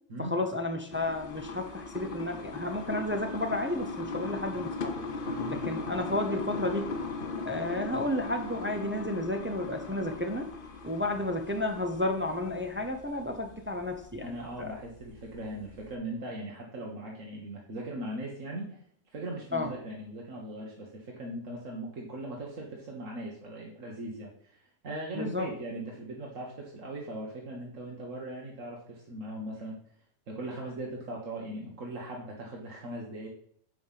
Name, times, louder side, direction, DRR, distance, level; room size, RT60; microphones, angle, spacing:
voice 1, 0.2-4.9 5.5-6.9 7.4-10.5 10.8-14.8 19.5-19.7 25.1-25.5, left 1 dB, 10° right, 4 dB, 0.7 m, -32 dB
sound 1, 0.9-15.9, left 3 dB, 50° left, 1.0 m, -39 dB
voice 2, 14.2-18.8 19.1-29.8 30.3-33.3, right 1 dB, 85° right, -2 dB, 1.8 m, -39 dB
7.9 x 5.4 x 5.7 m, 0.63 s
omnidirectional pair, 1.3 m